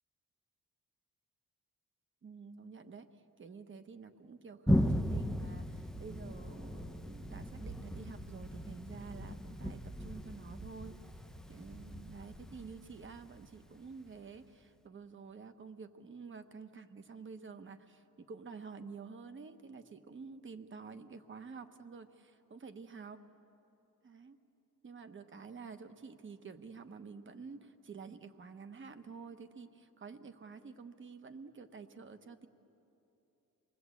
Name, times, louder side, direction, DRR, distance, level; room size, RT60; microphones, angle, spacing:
voice 1, 2.2-3.1 3.4-11.0 11.5-23.2 24.0-24.4 24.8-32.5, right 5 dB, 35° right, 10 dB, 1.0 m, -49 dB
Thunder, 4.7-14.1, equal, ahead, 0.5 m, -37 dB
28.0 x 20.5 x 8.3 m, 2.9 s
wide cardioid pair, 180°, 33 cm